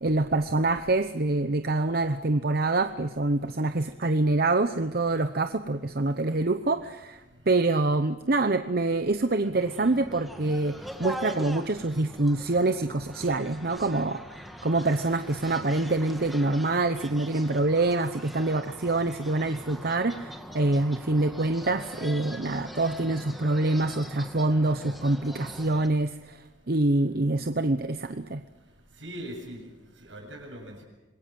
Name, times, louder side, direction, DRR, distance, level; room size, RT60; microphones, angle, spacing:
voice 1, 0.0-28.4, right 2 dB, 50° right, 9 dB, 0.9 m, -26 dB
sound 1, 9.6-25.9, equal, ahead, 2.0 m, -42 dB
voice 2, 28.9-30.8, equal, 80° right, 3 dB, 7.9 m, -41 dB
26.5 x 21.5 x 7.7 m, 1.1 s
head